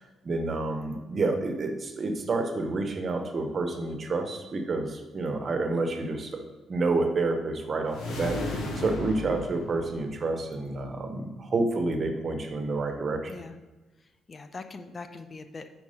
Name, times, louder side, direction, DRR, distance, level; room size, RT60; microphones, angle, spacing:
voice 1, 0.2-6.4 6.7-13.3, right 3 dB, 40° right, 5 dB, 0.9 m, -29 dB
sound 1, 7.9-10.5, left 2 dB, 75° left, 1.1 m, -34 dB
voice 2, 14.3-15.7, left 3 dB, 35° left, 9 dB, 0.4 m, -41 dB
5.3 x 4.7 x 5.0 m, 1.1 s
cardioid pair, 90°, 0 cm